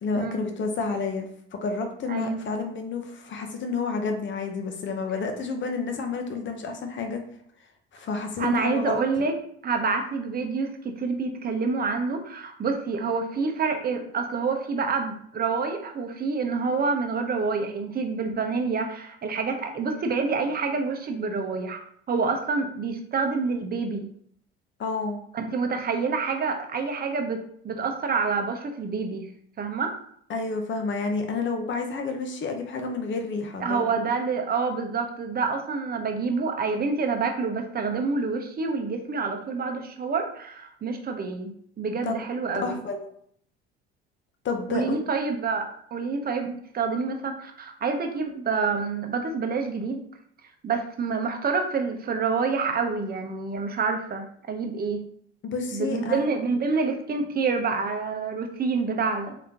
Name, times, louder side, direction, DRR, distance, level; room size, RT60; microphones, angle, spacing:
voice 1, 0.0-7.2 7.9-9.0 24.8-25.2 30.3-33.8 42.0-42.1 42.6-43.1 44.4-44.8 55.4-56.2, left 4 dB, 40° left, 4 dB, 1.0 m, -30 dB
voice 2, 2.1-2.4 8.4-9.3 9.6-21.8 22.1-24.1 25.3-29.3 29.6-29.9 33.6-42.8 44.7-50.0 50.6-55.0 55.7-59.4, right 4 dB, 30° right, 4 dB, 0.9 m, -27 dB
3.8 x 3.6 x 2.9 m, 0.65 s
hypercardioid pair, 65°, 31 cm